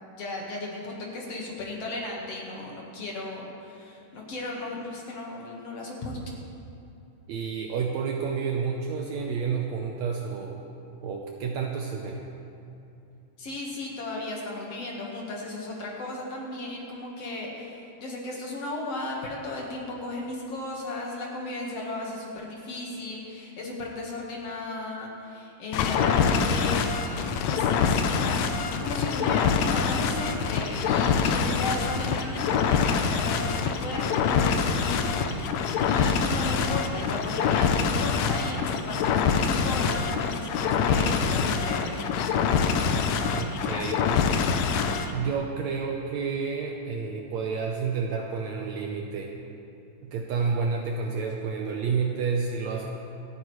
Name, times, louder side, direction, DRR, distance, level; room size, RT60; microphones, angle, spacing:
voice 1, 0.2-6.2 13.4-42.3, left 2 dB, 55° left, -2 dB, 2.2 m, -35 dB
voice 2, 7.3-10.6 11.0-12.2 43.3-44.3 45.1-49.3 50.0-52.9, right 5 dB, 75° right, 1 dB, 1.8 m, -30 dB
sound 1, 25.7-45.1, left 6 dB, 75° left, 1.7 m, -25 dB
26.0 x 9.1 x 3.1 m, 2.7 s
omnidirectional pair, 3.8 m